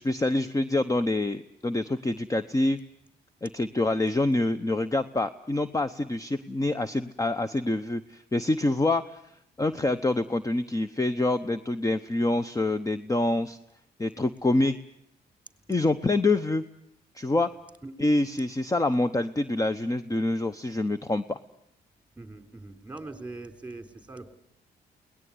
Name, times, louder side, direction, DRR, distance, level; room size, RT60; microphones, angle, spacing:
voice 1, 0.0-2.8 3.4-9.2 9.6-13.6 14.0-14.8 15.7-16.6 17.1-17.5 18.0-21.4, left 2 dB, 20° left, 12 dB, 0.9 m, -26 dB
voice 2, 22.2-24.3, right 2 dB, 10° right, 7 dB, 3.7 m, -42 dB
22.5 x 19.0 x 9.6 m, 0.75 s
cardioid pair, 70°, 18 cm